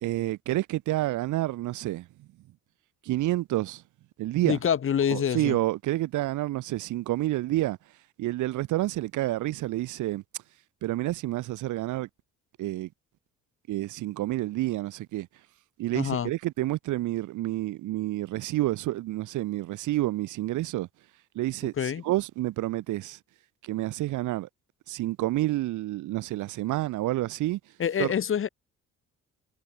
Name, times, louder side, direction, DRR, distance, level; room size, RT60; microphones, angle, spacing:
voice 1, 0.0-2.1 3.0-3.8 4.2-4.6 5.1-7.8 8.2-10.2 10.8-12.1 12.6-12.9 13.7-15.3 15.8-20.9 21.3-21.7 22.0-23.2 23.6-24.5 24.9-27.6 28.0-28.1, right 16 dB, 80° right, 0.8 m, -29 dB
voice 2, 4.4-5.6 15.9-16.3 21.8-22.0 27.8-28.5, left 8 dB, 45° left, 1.0 m, -26 dB
cardioid pair, 90°, 30 cm